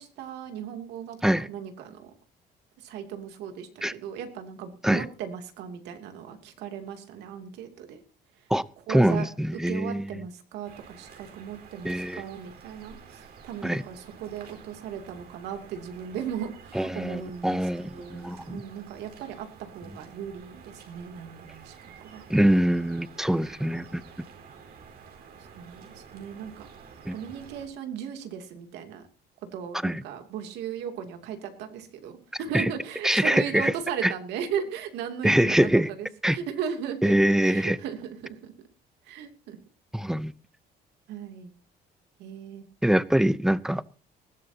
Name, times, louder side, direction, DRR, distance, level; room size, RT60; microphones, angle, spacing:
voice 1, 0.0-2.1 2.8-8.0 8.9-9.3 9.7-22.3 25.4-26.7 27.1-29.1 29.5-35.7 36.0-37.2 37.4-38.5 39.0-39.6 41.1-41.5 42.2-42.6, right 8 dB, 85° right, 6 dB, 2.8 m, -37 dB
voice 2, 8.9-10.2 11.8-12.2 13.6-13.8 16.7-18.6 22.3-24.0 27.0-27.1 29.8-30.0 32.5-32.7 33.0-33.7 34.0-34.1 35.2-35.9 36.2-36.4 37.0-37.8 39.9-40.3 42.8-43.8, right 1 dB, 5° right, 17 dB, 0.7 m, -24 dB
sound 1, 10.6-27.7, right 6 dB, 70° right, 4.4 m, -50 dB
20.0 x 15.5 x 2.8 m, 0.35 s
cardioid pair, 110°, 17 cm